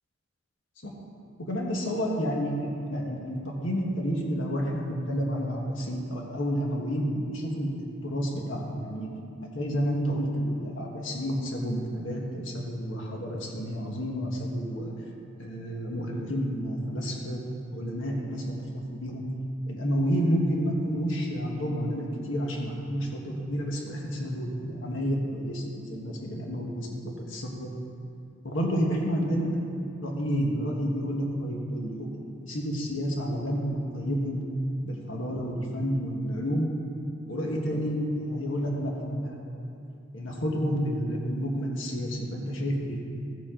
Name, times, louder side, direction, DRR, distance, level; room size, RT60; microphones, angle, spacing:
voice 1, 1.4-9.1 9.4-14.9 15.4-17.4 17.7-19.3 19.7-27.7 28.4-29.7 30.0-34.4 34.8-36.7 37.3-39.6 40.1-43.0, equal, 90° left, -1 dB, 1.4 m, -30 dB
15.5 x 7.1 x 3.8 m, 2.7 s
head